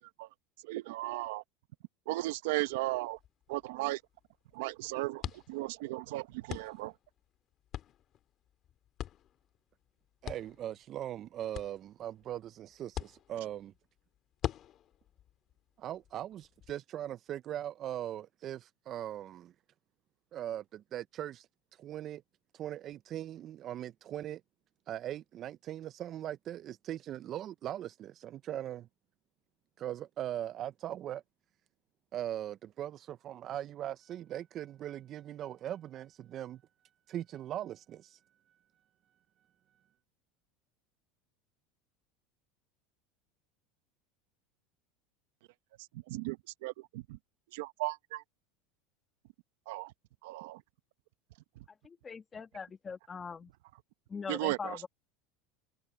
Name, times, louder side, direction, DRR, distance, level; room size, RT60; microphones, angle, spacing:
voice 1, 0.6-1.4 2.1-3.2 3.5-4.0 4.5-5.2 5.5-6.9 46.1-46.4 46.6-47.2 47.5-48.2 49.7-49.9 50.2-50.6 54.3-54.8, right 19 dB, 75° right, 1.1 m, -35 dB
sound 1, 2.6-16.7, left 11 dB, 40° left, 2.2 m, -46 dB
voice 2, 10.2-13.7 15.8-19.5 20.3-21.5 21.8-22.2 22.5-24.4 24.9-28.9 29.8-31.2 32.1-36.6 37.1-38.2, right 11 dB, 40° right, 0.4 m, -40 dB
voice 3, 51.8-53.5 54.1-54.9, left 5 dB, 25° left, 1.7 m, -41 dB
supercardioid pair, 115°, 0 cm